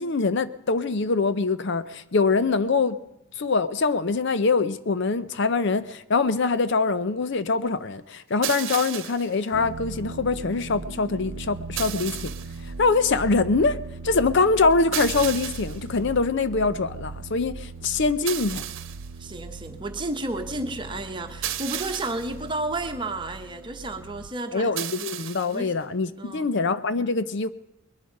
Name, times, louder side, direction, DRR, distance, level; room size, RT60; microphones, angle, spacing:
voice 1, 0.0-3.0 3.4-12.3 12.6-13.8 14.0-18.6 24.5-27.5, left 4 dB, 55° left, 0.6 m, -24 dB
sound 1, 8.4-9.3 11.8-12.6 14.9-15.8 18.3-19.1 21.4-22.3 24.8-25.6, right 12 dB, 60° right, 1.0 m, -33 dB
sound 2, 9.5-24.3, right 3 dB, 80° right, 0.7 m, -39 dB
voice 2, 19.2-25.1 25.5-25.7 26.2-26.5, right 2 dB, 20° right, 1.1 m, -32 dB
21.0 x 11.5 x 5.3 m
head